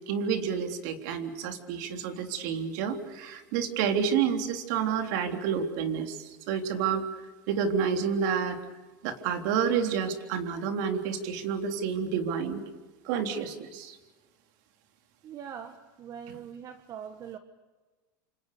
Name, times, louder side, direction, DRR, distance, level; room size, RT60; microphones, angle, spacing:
voice 1, 0.0-7.0 7.5-8.6 9.0-12.6 13.0-14.0, right 7 dB, 65° right, 5 dB, 3.6 m, -29 dB
voice 2, 15.2-17.4, right 8 dB, 35° right, 8 dB, 1.6 m, -42 dB
28.5 x 27.0 x 6.8 m, 1.2 s
supercardioid pair, 130°, 10 cm